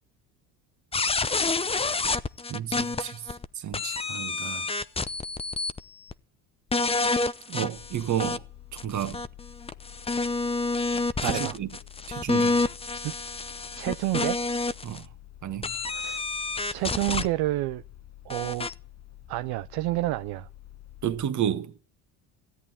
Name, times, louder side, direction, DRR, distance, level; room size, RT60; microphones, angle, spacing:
sound 1, 0.9-3.5 3.7-5.8 6.1-6.2 6.7-8.4 8.8-15.0 15.6-17.3 18.3-18.7, left 3 dB, 15° left, 0.7 m, -28 dB
voice 1, 2.5-4.7 7.5-8.4 8.7-9.2 11.2-11.7 12.1-12.6 14.8-15.1 15.4-15.8 21.0-21.8, right 10 dB, 45° right, 1.6 m, -32 dB
sound 2, 7.7-21.3, left 13 dB, 40° left, 1.1 m, -49 dB
voice 2, 11.2-11.6 13.0-13.1 13.7-14.4 15.9-16.2 16.7-17.8 18.2-18.7 19.3-20.5, right 17 dB, 65° right, 0.7 m, -29 dB
16.5 x 8.8 x 9.7 m
supercardioid pair, 80°, 41 cm